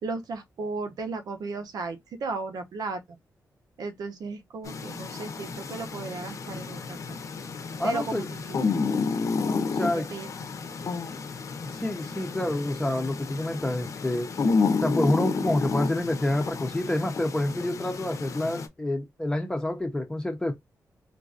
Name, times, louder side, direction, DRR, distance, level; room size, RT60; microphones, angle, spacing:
voice 1, 0.0-3.0 3.8-7.2 7.8-8.7 9.8-10.3, right 3 dB, 85° right, 0.9 m, -35 dB
sound 1, 4.6-18.7, left 4 dB, 60° left, 0.7 m, -31 dB
voice 2, 7.8-8.3 9.7-10.1 11.7-14.3 14.8-20.5, left 1 dB, 10° left, 0.7 m, -28 dB
3.8 x 2.6 x 2.4 m
wide cardioid pair, 125°, 6 cm